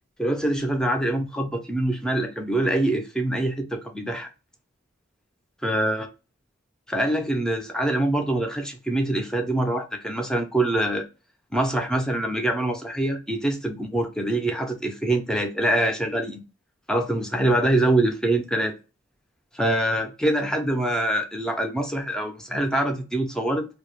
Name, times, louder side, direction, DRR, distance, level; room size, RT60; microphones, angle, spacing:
voice 1, 0.2-4.3 5.6-6.1 6.9-11.0 11.5-16.4 16.9-18.7 19.5-23.7, right 1 dB, 5° left, 0.3 m, -24 dB
2.2 x 2.0 x 2.9 m
head